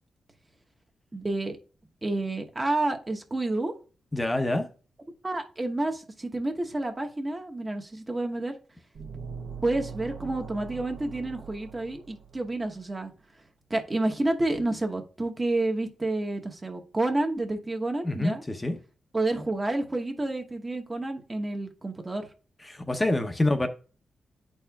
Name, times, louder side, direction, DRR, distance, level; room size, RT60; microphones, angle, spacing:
voice 1, 1.1-1.6 2.0-3.7 5.2-8.5 9.6-13.1 13.7-18.4 19.1-22.3, right 2 dB, 25° right, 1.0 m, -29 dB
voice 2, 4.1-4.7 18.0-18.8 22.6-23.7, left 2 dB, 20° left, 0.7 m, -26 dB
sound 1, 8.9-12.7, right 6 dB, 75° right, 1.2 m, -41 dB
10.0 x 4.3 x 2.3 m
cardioid pair, 70°, 0 cm